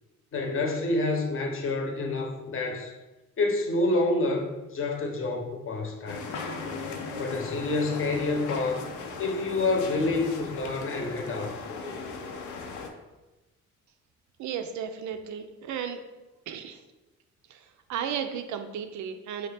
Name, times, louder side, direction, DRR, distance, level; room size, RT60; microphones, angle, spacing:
voice 1, 0.3-2.9 3.4-6.3 7.1-8.8 9.2-11.6, left 2 dB, 45° left, 2 dB, 0.8 m, -28 dB
sound 1, 6.1-12.9, left 4 dB, 80° left, 0.5 m, -37 dB
voice 2, 14.4-16.0 16.5-16.8 17.9-19.5, right 8 dB, 70° right, 7 dB, 0.4 m, -34 dB
4.2 x 2.3 x 3.3 m, 1.1 s
cardioid pair, 90°, 30 cm